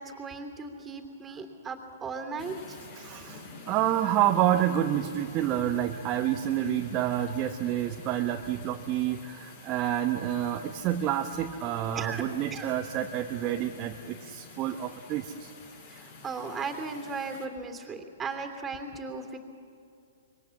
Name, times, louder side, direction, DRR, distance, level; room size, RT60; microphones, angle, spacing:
voice 1, 0.0-2.8 11.9-12.2 12.5-12.7 15.9-19.4, right 4 dB, 15° right, 5 dB, 3.0 m, -37 dB
sound 1, 2.4-17.5, left 4 dB, 50° left, 7.1 m, -49 dB
voice 2, 2.9-15.5, right 11 dB, 30° right, 3 dB, 1.1 m, -28 dB
26.5 x 23.0 x 7.4 m, 2.6 s
figure-of-eight pair, 115°, 0 cm